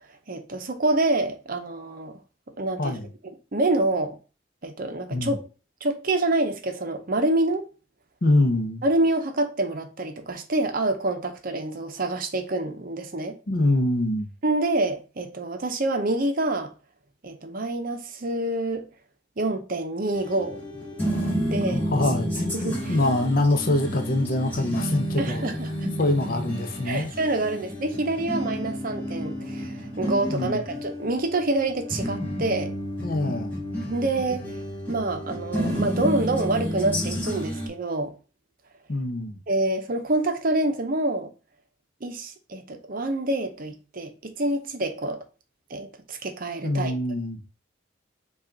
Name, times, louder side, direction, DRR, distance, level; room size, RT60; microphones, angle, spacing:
voice 1, 0.3-2.2 2.6-3.0 3.5-4.2 4.6-5.4 5.8-7.7 8.8-13.4 14.4-16.7 17.2-18.9 19.4-20.6 21.5-21.8 22.5-22.8 25.2-25.9 26.9-32.7 33.9-34.6 34.9-38.1 39.5-41.3 42.0-45.2 45.7-47.0, right 2 dB, 45° right, 0.7 m, -27 dB
voice 2, 2.8-3.1 5.1-5.4 8.2-8.8 13.5-14.3 21.7-25.5 26.0-27.1 30.3-30.6 33.0-33.5 38.9-39.4 46.6-47.4, left 2 dB, 45° left, 0.7 m, -24 dB
sound 1, 20.1-37.7, equal, 10° left, 1.8 m, -30 dB
5.5 x 2.4 x 3.8 m
head